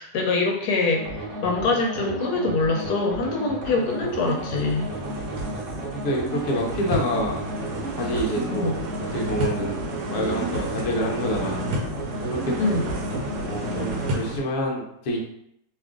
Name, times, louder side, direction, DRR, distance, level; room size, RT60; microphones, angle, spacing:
voice 1, 0.0-4.9 8.5-8.7 12.6-12.8, left 3 dB, 75° left, 1 dB, 1.1 m, -24 dB
sound 1, 0.9-14.1, right 1 dB, 50° right, 1.1 m, -33 dB
sound 2, 2.8-3.0 3.4-14.4, right 1 dB, 75° right, 1.2 m, -32 dB
voice 2, 5.8-7.4 8.0-8.8 9.1-9.8 10.1-11.6 12.3-12.6 13.4-15.2, equal, 55° left, -1 dB, 0.7 m, -27 dB
2.8 x 2.4 x 3.6 m, 0.75 s
omnidirectional pair, 1.7 m